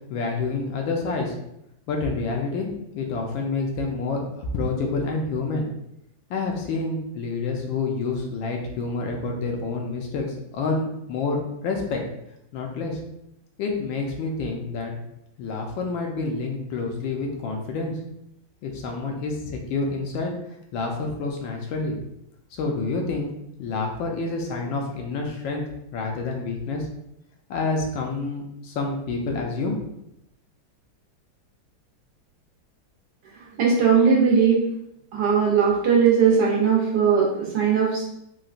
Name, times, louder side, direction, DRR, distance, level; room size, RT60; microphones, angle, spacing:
voice 1, 0.1-1.3 1.9-2.7 2.9-5.7 6.3-12.0 12.5-13.0 13.6-15.0 15.4-17.9 18.6-20.3 20.7-22.0 22.5-23.3 23.6-25.6 25.9-26.9 27.5-29.8, left 3 dB, 75° left, 1 dB, 1.3 m, -28 dB
voice 2, 33.6-34.6 35.1-38.1, right 6 dB, 75° right, -3 dB, 1.1 m, -19 dB
3.9 x 2.2 x 2.4 m, 0.80 s
omnidirectional pair, 2.2 m